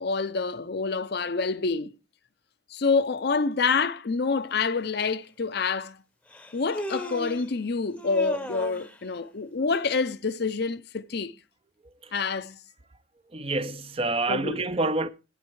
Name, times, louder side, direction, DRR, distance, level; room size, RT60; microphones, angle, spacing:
voice 1, 0.0-1.9 2.7-6.0 6.5-11.3 12.1-12.6 14.3-14.6, left 4 dB, 55° left, 0.6 m, -27 dB
Human voice, 4.9-5.0 6.3-7.5 8.0-9.0, left 1 dB, 5° left, 0.8 m, -36 dB
voice 2, 13.3-15.1, right 2 dB, 30° right, 0.6 m, -27 dB
10.5 x 9.0 x 4.6 m
head